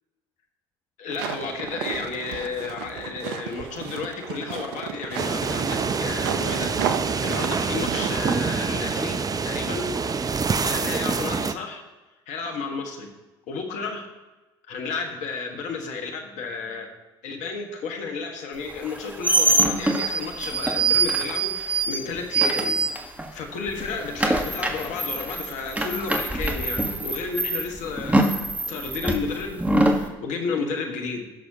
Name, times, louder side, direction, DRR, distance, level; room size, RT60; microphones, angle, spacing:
voice 1, 1.0-9.9 10.6-11.8 12.3-13.1 13.5-14.1 14.7-16.9 17.2-22.8 23.3-31.3, left 4 dB, 65° left, 3 dB, 1.6 m, -32 dB
sound 1, 1.1-8.4, right 8 dB, 80° right, 0.8 m, -32 dB
sound 2, 5.2-11.5, right 5 dB, 30° right, 0.6 m, -26 dB
sound 3, 18.8-23.4 23.7-30.1, right 2 dB, 10° right, 1.5 m, -24 dB
16.5 x 6.3 x 2.9 m, 1.1 s
hypercardioid pair, 60°, 13 cm